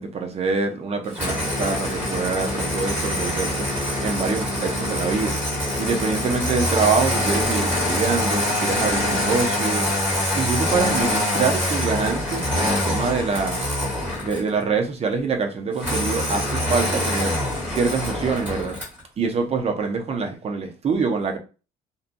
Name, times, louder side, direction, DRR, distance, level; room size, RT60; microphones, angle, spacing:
voice 1, 0.0-3.7 4.0-5.4 5.8-9.9 10.3-13.7 14.2-17.4 17.7-18.8 19.2-21.4, right 4 dB, 35° right, 0.6 m, -25 dB
Engine starting, 1.1-14.5 15.8-19.0, left 1 dB, 10° right, 1.4 m, -24 dB
2.6 x 2.2 x 2.5 m
cardioid pair, 110°, 17 cm